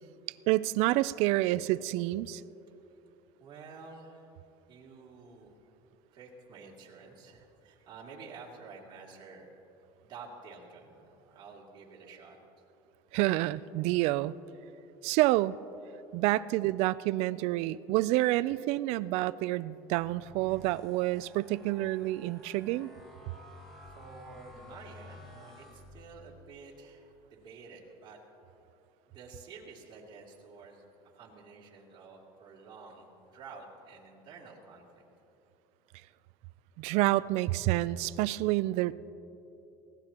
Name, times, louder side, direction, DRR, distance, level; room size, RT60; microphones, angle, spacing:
voice 1, 0.5-2.4 13.1-14.3 15.0-15.6 16.1-22.9 36.8-38.9, right 17 dB, 65° right, 18 dB, 0.4 m, -28 dB
voice 2, 3.4-4.3 4.7-5.6 6.1-9.5 10.0-12.4 23.9-28.2 29.1-30.8 31.1-35.0, right 4 dB, 40° right, -4 dB, 2.9 m, -50 dB
sound 1, 19.9-26.4, left 1 dB, 5° left, 3.5 m, -53 dB
23.0 x 17.0 x 2.9 m, 2.9 s
cardioid pair, 135°, 12 cm